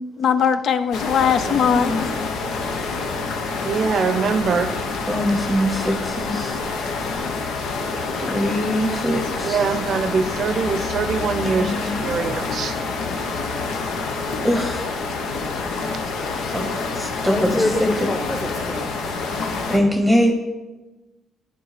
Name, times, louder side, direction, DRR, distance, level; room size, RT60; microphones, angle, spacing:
voice 1, 0.2-2.1, left 7 dB, 65° left, 11 dB, 0.5 m, -20 dB
sound 1, 0.9-19.8, left 4 dB, 85° left, 0.9 m, -27 dB
voice 2, 1.7-2.0 5.1-6.6 8.2-9.6 11.4-12.1 14.4-14.8 16.5-16.7 17.0-18.1 19.5-20.3, equal, 5° right, 3 dB, 0.9 m, -22 dB
voice 3, 3.6-4.7 8.7-8.8 9.4-12.8, right 5 dB, 60° right, 12 dB, 0.6 m, -23 dB
voice 4, 15.7-16.0 17.3-18.9, left 1 dB, 25° left, 5 dB, 1.2 m, -27 dB
11.5 x 4.6 x 5.0 m, 1.1 s
cardioid pair, 90°, 0 cm